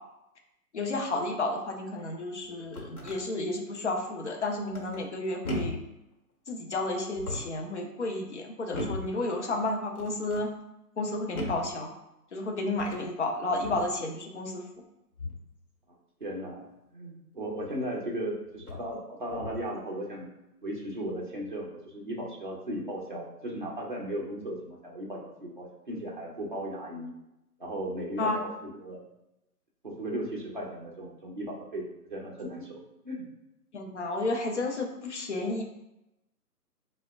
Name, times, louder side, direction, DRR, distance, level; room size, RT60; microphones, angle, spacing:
voice 1, 0.7-5.8 6.5-10.5 11.0-11.9 12.3-14.6 28.2-28.4 33.7-35.6, left 2 dB, 50° left, 2 dB, 0.5 m, -31 dB
sound 1, 2.4-3.2 4.7-5.1 5.4-5.9 7.1-7.6 8.7-9.2 9.9-10.5 11.3-11.7 12.7-13.1 13.6-13.9 15.2-15.5 17.6-17.7 18.6-18.9 19.3-19.7, left 1 dB, 70° left, 0.9 m, -37 dB
voice 2, 16.2-16.7 16.9-20.3 20.6-27.1 27.6-29.0 29.8-32.8 33.0-33.2, right 1 dB, 35° right, -4 dB, 0.5 m, -36 dB
4.8 x 2.1 x 2.2 m, 0.90 s
hypercardioid pair, 160°, 47 cm